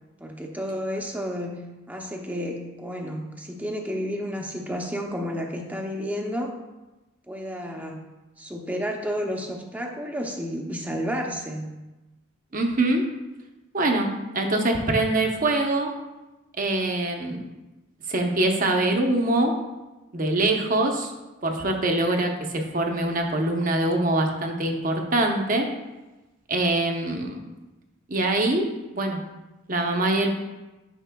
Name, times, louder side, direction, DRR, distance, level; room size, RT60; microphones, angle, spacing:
voice 1, 0.2-6.5 7.3-8.1 8.4-11.7, equal, 10° right, 1 dB, 0.7 m, -31 dB
voice 2, 12.5-13.0 13.7-14.1 14.3-15.9 16.6-17.4 18.1-19.5 20.1-21.1 21.4-25.7 26.5-27.4 28.1-28.7 28.9-29.2 29.7-30.3, right 2 dB, 40° right, 3 dB, 0.8 m, -23 dB
10.0 x 5.4 x 2.3 m, 1.1 s
head